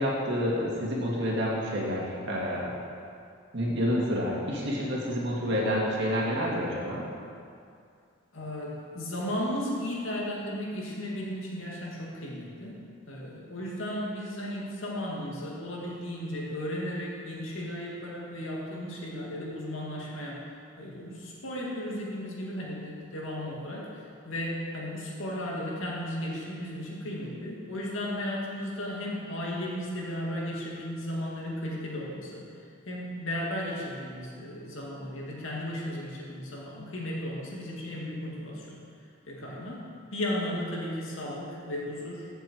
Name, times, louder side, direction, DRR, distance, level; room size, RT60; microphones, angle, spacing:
voice 1, 0.0-2.7 3.5-7.0, equal, 55° right, -4 dB, 2.2 m, -28 dB
voice 2, 8.3-12.8 13.1-20.4 20.8-23.9 24.3-32.5 32.8-38.8 39.3-39.9 40.1-42.3, left 1 dB, 70° left, -4 dB, 2.3 m, -35 dB
15.5 x 7.0 x 4.7 m, 2.4 s
head